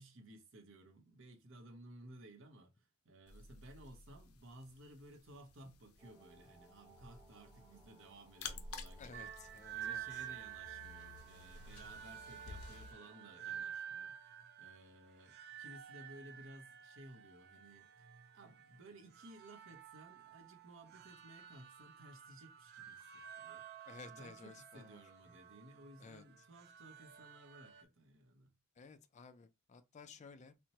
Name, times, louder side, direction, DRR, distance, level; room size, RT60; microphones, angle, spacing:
voice 1, 0.0-9.3 9.7-18.1 18.3-28.5, right 1 dB, 65° right, 0.8 m, -58 dB
sound 1, 3.3-12.9, left 4 dB, 90° left, 0.6 m, -53 dB
sound 2, 6.0-13.6, right 1 dB, 20° right, 1.0 m, -65 dB
voice 2, 9.0-10.3 23.9-25.0 26.0-26.2 28.8-30.7, left 4 dB, 35° left, 0.3 m, -55 dB
sound 3, 9.1-27.8, right 9 dB, 50° right, 0.3 m, -51 dB
4.3 x 2.1 x 2.8 m
head